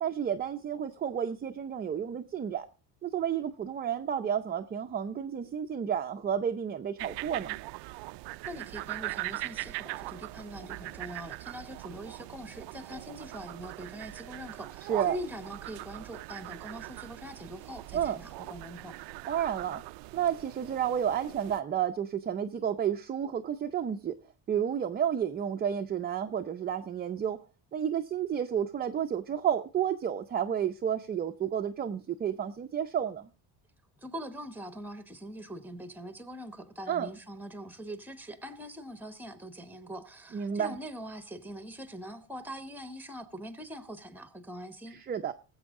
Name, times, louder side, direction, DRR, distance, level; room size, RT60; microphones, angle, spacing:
voice 1, 0.0-2.7 3.0-7.6 14.9-15.2 17.9-18.2 19.3-19.8 20.1-24.2 24.5-27.4 27.7-33.3 36.9-37.1 40.3-40.8 44.9-45.3, right 9 dB, 20° right, 0.6 m, -31 dB
sound 1, 7.0-21.6, right 22 dB, 70° right, 0.5 m, -41 dB
voice 2, 8.5-19.0 34.0-45.0, equal, 5° right, 1.0 m, -43 dB
20.0 x 8.0 x 3.6 m
cardioid pair, 165°, 43 cm